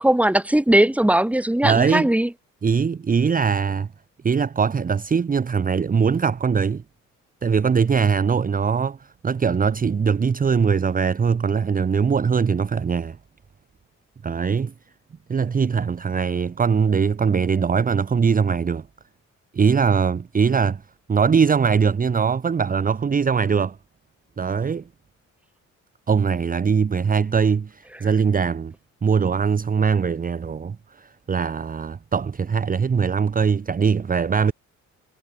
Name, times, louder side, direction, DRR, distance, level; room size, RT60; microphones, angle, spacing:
voice 1, 0.0-2.3, right 1 dB, 5° right, 1.7 m, -19 dB
voice 2, 1.6-2.1 2.6-3.9 4.2-6.8 7.4-13.2 14.2-14.7 15.3-18.8 19.5-20.8 21.1-23.8 24.4-24.8 26.1-28.7 29.0-34.5, right 6 dB, 30° right, 0.9 m, -21 dB
cardioid pair, 90°, 30 cm